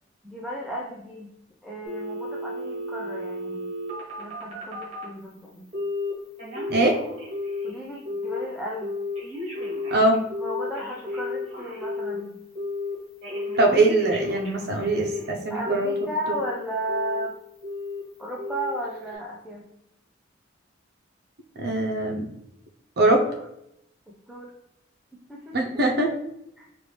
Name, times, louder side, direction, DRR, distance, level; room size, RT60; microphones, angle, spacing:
voice 1, 0.2-1.3 1.6-3.7 4.2-5.7 7.6-8.9 10.4-12.4 15.5-17.3 18.2-19.6 24.1-24.5 25.1-25.8 26.6-26.7, right 1 dB, ahead, -4 dB, 0.6 m, -34 dB
Telephone, 1.8-5.1 5.7-6.1 6.4-7.7 8.1-8.4 8.8-12.2 12.6-12.9 13.2-15.3 15.7-16.5 16.9-17.3 17.6-18.0 18.4-18.8 19.1-19.2, left 2 dB, 35° right, 1.5 m, -32 dB
voice 2, 6.7-7.0 9.9-10.2 13.6-15.9 21.6-22.2 23.0-23.3 25.5-26.1, right 2 dB, 60° right, 1 dB, 0.7 m, -22 dB
4.7 x 2.5 x 3.3 m, 0.79 s
head